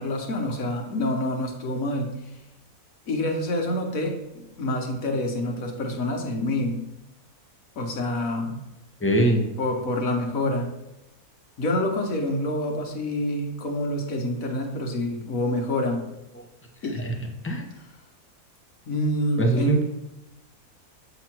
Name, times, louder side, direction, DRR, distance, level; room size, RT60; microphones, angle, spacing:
voice 1, 0.0-2.1 3.1-6.8 7.8-8.6 9.6-10.7 11.6-16.1 16.8-17.0 18.9-19.8, left 1 dB, 65° left, 2 dB, 1.5 m, -27 dB
voice 2, 9.0-9.5 16.9-17.1 17.4-17.6 19.4-19.8, right 1 dB, 10° left, 1 dB, 0.7 m, -22 dB
7.9 x 3.0 x 6.0 m, 0.94 s
omnidirectional pair, 1.6 m